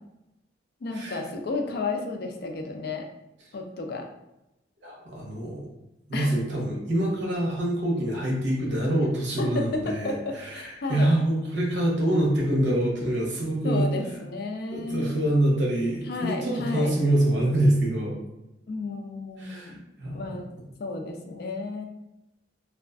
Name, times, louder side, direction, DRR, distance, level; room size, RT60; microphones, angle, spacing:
voice 1, 0.8-3.1 3.5-4.1 6.1-6.4 9.4-11.1 13.6-15.1 16.1-16.9 18.7-19.8 20.1-20.5 20.8-21.9, left 3 dB, 55° left, 3 dB, 0.3 m, -32 dB
voice 2, 4.8-5.7 6.1-13.8 14.7-18.1 19.4-20.4, right 1 dB, 70° right, -3 dB, 0.8 m, -25 dB
2.3 x 2.3 x 2.3 m, 0.90 s
head